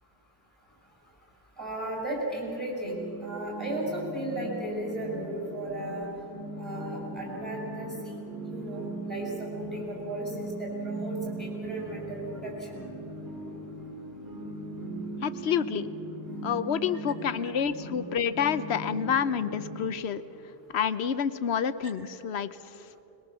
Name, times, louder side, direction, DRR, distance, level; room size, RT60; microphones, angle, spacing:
voice 1, 1.6-6.1 6.6-12.8, right 1 dB, ahead, -2 dB, 6.2 m, -35 dB
sound 1, 2.8-19.9, right 1 dB, 20° right, 2.8 m, -39 dB
voice 2, 15.2-15.9 16.4-20.2 20.7-22.9, left 7 dB, 90° left, 13 dB, 1.0 m, -28 dB
22.0 x 21.5 x 6.9 m, 2.9 s
omnidirectional pair, 1.1 m